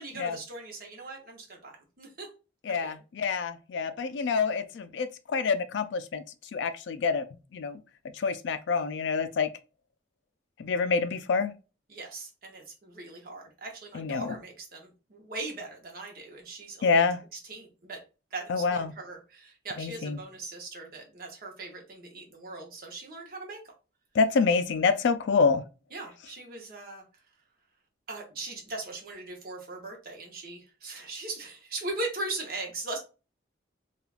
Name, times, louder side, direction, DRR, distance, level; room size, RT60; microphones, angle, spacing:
voice 1, 0.0-2.3 2.7-2.9 11.9-18.0 18.3-23.7 25.9-27.0 28.1-33.0, right 2 dB, 50° right, 0.8 m, -40 dB
voice 2, 2.7-6.2 6.5-7.3 7.5-7.8 8.1-9.5 10.6-11.5 13.9-14.4 16.8-17.2 18.5-18.9 19.8-20.2 24.1-25.6, left 5 dB, 75° left, 0.3 m, -27 dB
3.2 x 2.3 x 2.3 m
head